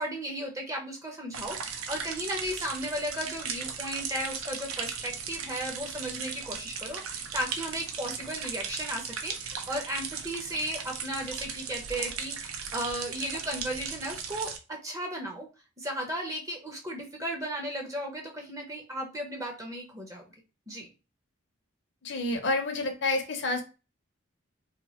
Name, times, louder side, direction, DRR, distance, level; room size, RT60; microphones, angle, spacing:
voice 1, 0.0-15.5 15.8-20.2 20.7-20.9, equal, 15° right, 1 dB, 0.5 m, -35 dB
sound 1, 1.3-14.6, right 6 dB, 90° right, 0.5 m, -37 dB
voice 2, 22.0-23.6, left 2 dB, 55° left, 6 dB, 0.5 m, -29 dB
2.8 x 2.2 x 2.9 m, 0.31 s
head